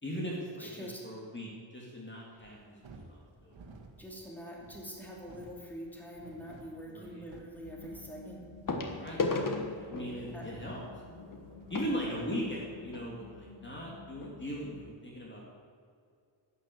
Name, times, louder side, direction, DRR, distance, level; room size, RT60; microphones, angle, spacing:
voice 1, 0.0-2.8 3.1-3.6 6.9-7.2 8.9-9.3 9.6-10.8 11.7-15.4, equal, 25° left, -3 dB, 2.4 m, -39 dB
voice 2, 0.6-1.0 4.0-8.4 10.3-10.4, equal, 5° left, -3 dB, 2.8 m, -45 dB
sound 1, 2.4-12.3, right 3 dB, 75° right, 1.8 m, -55 dB
sound 2, 5.1-5.4 7.1-7.2 8.7-13.1 13.9-14.0 14.2-14.4 14.9-15.0, left 3 dB, 45° left, 1.5 m, -37 dB
sound 3, 7.6-14.9, left 5 dB, 70° left, 0.9 m, -53 dB
12.0 x 9.6 x 8.0 m, 2.3 s
wide cardioid pair, 145°, 46 cm